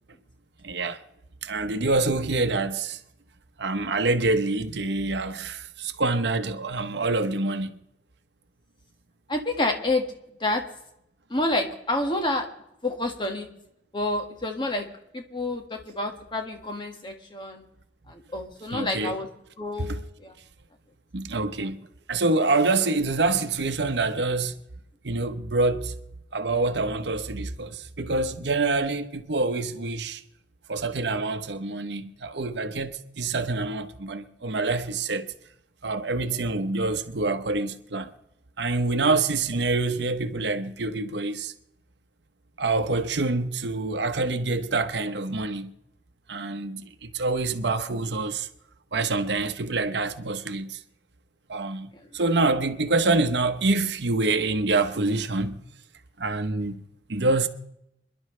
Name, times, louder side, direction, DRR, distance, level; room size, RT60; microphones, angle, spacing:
voice 1, 0.6-1.0 1.4-3.0 3.6-7.8 18.7-19.2 19.8-20.0 21.1-24.6 25.0-25.9 26.3-30.2 30.7-35.3 35.8-38.1 38.6-41.5 42.6-45.7 46.3-48.5 48.9-50.8 51.5-55.6 56.2-56.8 57.1-57.5, right 3 dB, 70° right, 0.9 m, -26 dB
voice 2, 9.3-10.1 10.4-10.6 11.3-12.5 12.8-13.5 13.9-14.9 15.1-17.6 18.1-19.3 19.6-20.3 36.3-36.4 51.9-52.1, left 2 dB, 25° left, 1.7 m, -28 dB
27.0 x 11.0 x 3.3 m
head